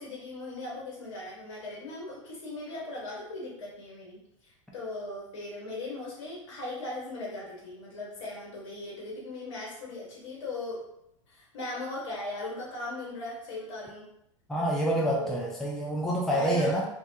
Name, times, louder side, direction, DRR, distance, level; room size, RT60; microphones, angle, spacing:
voice 1, 0.0-10.8 11.3-14.1 15.0-15.4 16.3-16.8, left 2 dB, 60° left, -4 dB, 1.2 m, -38 dB
voice 2, 14.5-16.8, right 1 dB, ahead, -3 dB, 0.4 m, -27 dB
2.3 x 2.2 x 2.7 m, 0.79 s
hypercardioid pair, 100°, 17 cm